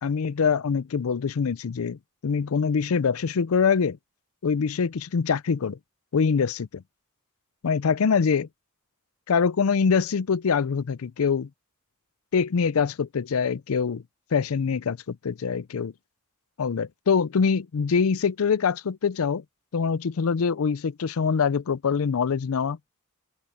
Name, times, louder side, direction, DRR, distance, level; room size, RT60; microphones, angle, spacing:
voice 1, 0.0-4.0 4.4-5.8 6.1-6.8 7.6-8.5 9.3-11.5 12.3-14.0 14.3-15.9 16.6-19.4 19.7-22.8, left 6 dB, 80° left, 0.5 m, -24 dB
open air
head